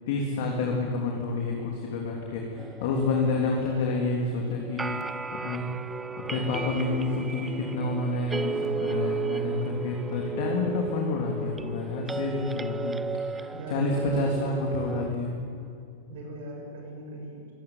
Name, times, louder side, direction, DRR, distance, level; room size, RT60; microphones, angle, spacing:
voice 1, 0.1-5.7 6.2-12.9 13.3-15.3, left 3 dB, 50° left, 0 dB, 3.3 m, -29 dB
sound 1, 2.6-15.1, right 5 dB, 10° right, 0.6 m, -34 dB
voice 2, 13.5-14.5 16.1-17.5, right 1 dB, 55° right, 0 dB, 7.1 m, -39 dB
24.0 x 16.5 x 9.9 m, 2.6 s
figure-of-eight pair, 90°, 0 cm